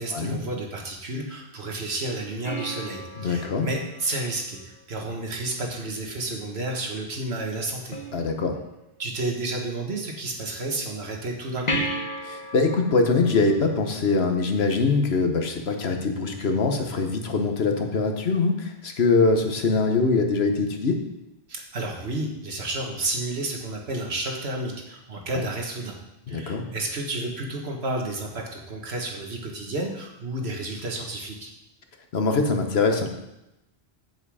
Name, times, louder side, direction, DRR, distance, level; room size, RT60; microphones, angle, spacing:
voice 1, 0.0-8.0 9.0-11.8 21.5-26.0 26.3-31.5, right 2 dB, 75° right, 1 dB, 1.7 m, -31 dB
sound 1, 2.4-5.1 7.9-8.9 11.7-14.6 17.6-17.7, equal, 40° left, 1.2 m, -35 dB
voice 2, 3.2-3.7 8.1-8.6 12.3-21.0 25.3-25.4 26.3-26.6 32.1-33.1, left 3 dB, 75° left, 4 dB, 1.3 m, -23 dB
7.9 x 7.7 x 4.8 m, 0.91 s
omnidirectional pair, 1.1 m